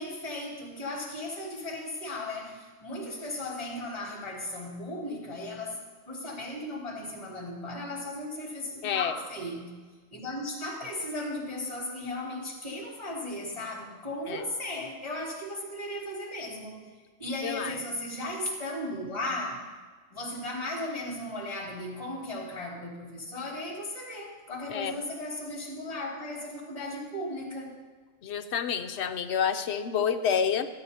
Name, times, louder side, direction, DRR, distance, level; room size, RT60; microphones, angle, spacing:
voice 1, 0.0-5.8 6.1-9.7 10.1-16.9 17.2-19.7 20.1-27.8, left 1 dB, 30° left, -9 dB, 3.1 m, -36 dB
voice 2, 8.8-9.1 14.3-14.4 17.4-17.8 24.7-25.0 28.2-30.7, left 7 dB, 60° left, 8 dB, 0.9 m, -28 dB
14.0 x 12.5 x 2.8 m, 1.4 s
omnidirectional pair, 1.4 m